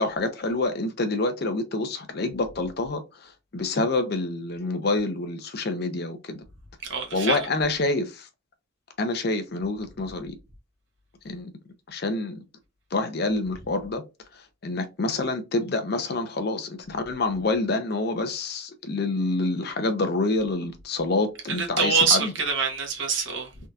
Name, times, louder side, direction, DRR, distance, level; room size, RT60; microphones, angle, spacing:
voice 1, 0.0-6.4 7.1-8.3 9.0-10.4 11.2-11.5 11.9-12.4 12.9-14.0 14.3-22.3, left 2 dB, 55° left, 0.6 m, -27 dB
voice 2, 6.9-7.4 21.5-23.5, right 5 dB, 75° right, 1.1 m, -24 dB
3.5 x 2.7 x 2.3 m
head